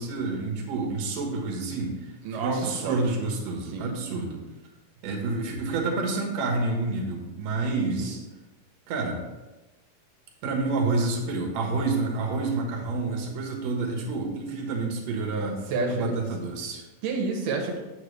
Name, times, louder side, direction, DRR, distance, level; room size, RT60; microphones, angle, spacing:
voice 1, 0.0-4.4 5.0-8.2 8.9-9.2 10.4-15.6 15.9-16.8, right 3 dB, 60° right, 1 dB, 2.4 m, -28 dB
voice 2, 2.2-3.0 3.7-3.9 8.0-8.1 15.7-16.1 17.0-17.8, right 3 dB, 80° right, 1 dB, 2.5 m, -29 dB
8.2 x 7.1 x 3.3 m, 1.1 s
omnidirectional pair, 3.7 m